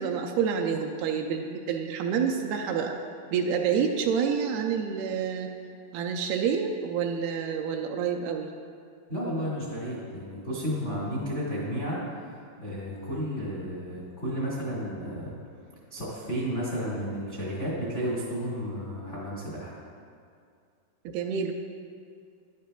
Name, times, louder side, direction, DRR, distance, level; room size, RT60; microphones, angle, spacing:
voice 1, 0.0-3.0 3.3-5.5 5.9-8.5 21.1-21.5, right 7 dB, 80° right, 2 dB, 2.3 m, -28 dB
voice 2, 9.1-12.0 12.6-15.4 15.9-19.7, equal, 55° left, -6 dB, 0.7 m, -32 dB
12.0 x 11.0 x 2.3 m, 2.3 s
omnidirectional pair, 4.6 m